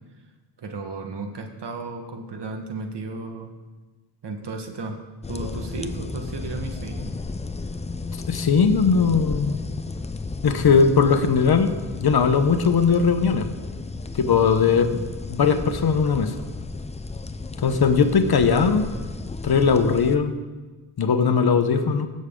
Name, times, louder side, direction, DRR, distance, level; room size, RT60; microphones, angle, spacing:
voice 1, 0.6-3.5 4.2-5.0 5.3-7.1, right 3 dB, 60° right, 4 dB, 1.4 m, -34 dB
sound 1, 5.2-20.1, left 3 dB, 15° left, 0.4 m, -33 dB
voice 2, 8.3-9.6 10.4-11.7 12.0-13.5 14.1-15.0 15.3-16.4 17.6-18.8 19.4-20.3 21.0-22.1, left 5 dB, 55° left, 8 dB, 1.0 m, -19 dB
17.0 x 6.5 x 3.7 m, 1.3 s
cardioid pair, 75°, 46 cm